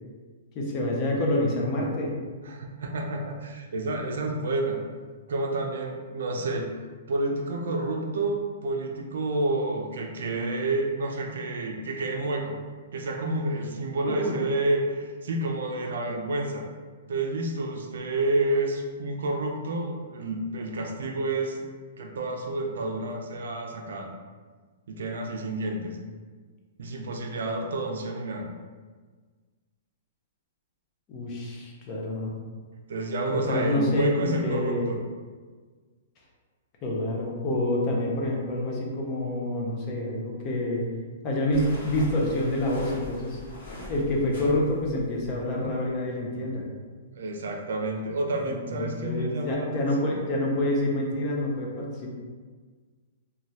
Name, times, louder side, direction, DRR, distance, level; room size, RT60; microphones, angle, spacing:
voice 1, 0.5-2.1 14.1-14.3 31.1-32.3 33.3-34.9 36.8-40.8 41.2-43.4 43.9-46.6 48.5-52.1, left 1 dB, 25° left, -2 dB, 0.4 m, -27 dB
voice 2, 2.4-4.8 5.3-6.7 7.1-12.6 12.9-16.6 17.1-21.6 22.0-24.1 24.9-26.0 26.8-28.5 32.9-35.0 47.1-50.1, right 2 dB, 75° right, 2 dB, 0.4 m, -29 dB
sound 1, 41.5-45.9, left 2 dB, 70° left, 1.2 m, -42 dB
3.1 x 2.3 x 2.7 m, 1.5 s
hypercardioid pair, 175°, 0 cm